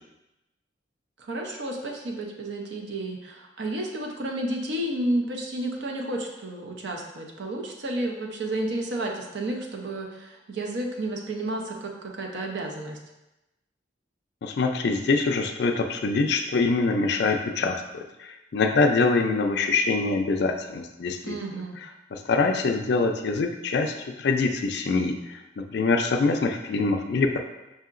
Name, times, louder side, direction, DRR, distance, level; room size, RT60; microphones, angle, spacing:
voice 1, 1.2-13.0 21.2-21.8, right 1 dB, 65° right, 1 dB, 0.6 m, -31 dB
voice 2, 14.4-21.3 22.1-27.4, left 3 dB, 60° left, 5 dB, 0.3 m, -24 dB
5.4 x 2.8 x 2.5 m, 0.96 s
head